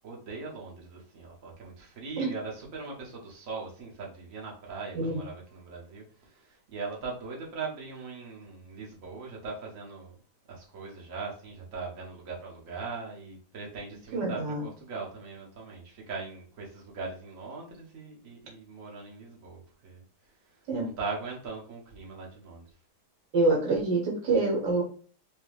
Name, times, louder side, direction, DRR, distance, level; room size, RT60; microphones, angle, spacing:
voice 1, 0.0-10.2 10.5-22.7, right 4 dB, 50° right, -2 dB, 1.5 m, -40 dB
voice 2, 14.1-14.6 20.7-20.9 23.3-24.8, right 3 dB, 75° right, 0 dB, 1.7 m, -26 dB
5.1 x 2.3 x 3.2 m, 0.42 s
omnidirectional pair, 1.8 m